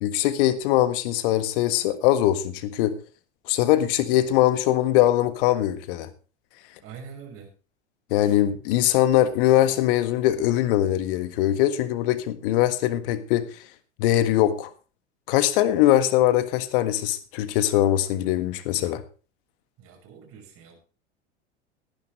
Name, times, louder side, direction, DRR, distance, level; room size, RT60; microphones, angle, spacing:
voice 1, 0.0-3.0 3.5-6.1 8.1-13.5 14.0-14.7 15.3-19.0, left 13 dB, 50° left, 12 dB, 1.7 m, -22 dB
voice 2, 6.8-7.5 19.8-20.8, right 6 dB, 40° right, 3 dB, 5.8 m, -44 dB
18.0 x 10.5 x 3.3 m, 0.36 s
figure-of-eight pair, 80°, 35 cm